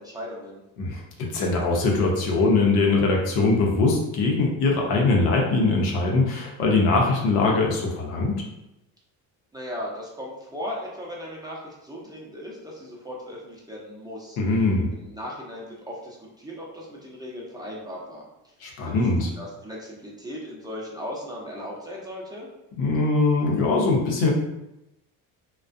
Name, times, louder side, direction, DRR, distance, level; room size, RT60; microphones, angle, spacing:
voice 1, 0.0-0.6 9.5-14.4 14.9-18.3 18.8-22.5, equal, 10° right, -5 dB, 0.5 m, -37 dB
voice 2, 0.8-8.4 14.4-14.9 18.6-19.3 22.8-24.3, left 3 dB, 85° left, -1 dB, 0.7 m, -22 dB
2.3 x 2.2 x 2.5 m, 0.89 s
supercardioid pair, 85°, 46 cm